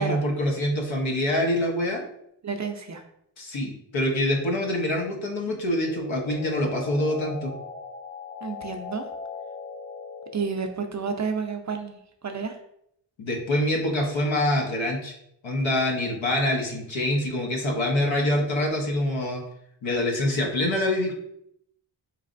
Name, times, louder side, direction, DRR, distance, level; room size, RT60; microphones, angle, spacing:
voice 1, 0.0-2.0 3.4-7.5 13.2-15.1 15.4-19.4 19.8-21.1, left 1 dB, 70° left, 1 dB, 1.0 m, -25 dB
voice 2, 2.4-3.0 8.4-9.1 10.3-12.6, right 5 dB, 40° right, 6 dB, 0.5 m, -30 dB
sound 1, 5.7-10.6, left 5 dB, 25° left, 0.4 m, -39 dB
4.0 x 3.2 x 2.5 m, 0.74 s
cardioid pair, 60°, 47 cm